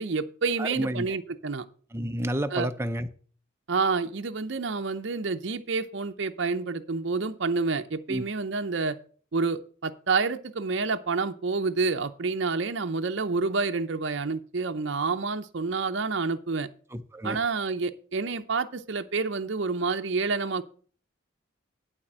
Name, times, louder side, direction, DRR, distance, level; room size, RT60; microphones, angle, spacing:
voice 1, 0.0-1.7 2.5-2.7 3.7-9.0 9.3-16.7 17.2-20.6, right 4 dB, 60° right, 0.6 m, -28 dB
voice 2, 0.6-1.2 1.9-3.1 8.1-8.2 16.9-17.4, right 1 dB, 10° right, 0.5 m, -30 dB
11.5 x 4.2 x 7.3 m
head